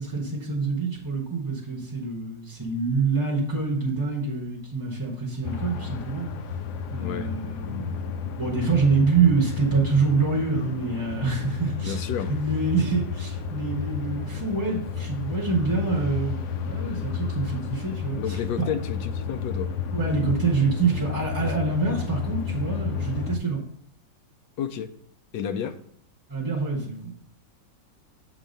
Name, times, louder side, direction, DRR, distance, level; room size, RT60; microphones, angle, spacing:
voice 1, 0.0-6.3 6.9-12.0 12.3-18.4 19.9-23.6 26.3-27.1, right 4 dB, 15° right, -3 dB, 0.8 m, -26 dB
sound 1, 5.4-23.4, left 6 dB, 70° left, 1.1 m, -32 dB
voice 2, 7.0-7.3 11.8-12.4 18.2-19.7 21.4-21.5 24.6-24.9 25.3-25.8, left 8 dB, 90° left, 10 dB, 1.3 m, -31 dB
7.3 x 2.9 x 5.1 m, 0.62 s
omnidirectional pair, 1.9 m